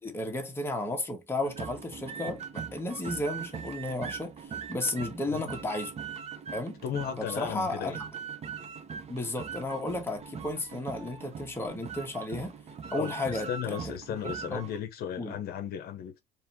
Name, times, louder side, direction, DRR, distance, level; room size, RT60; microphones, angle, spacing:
voice 1, 0.0-2.4 2.7-5.9 6.5-6.8 7.2-7.9 9.1-12.5 12.9-13.8 14.2-14.6 15.2-15.4, left 2 dB, 15° left, 1.4 m, -33 dB
sound 1, 1.4-14.8, right 6 dB, 40° right, 0.8 m, -41 dB
voice 2, 6.8-8.0 13.0-16.2, left 9 dB, 65° left, 0.8 m, -35 dB
4.1 x 2.9 x 2.7 m
cardioid pair, 110°, 17 cm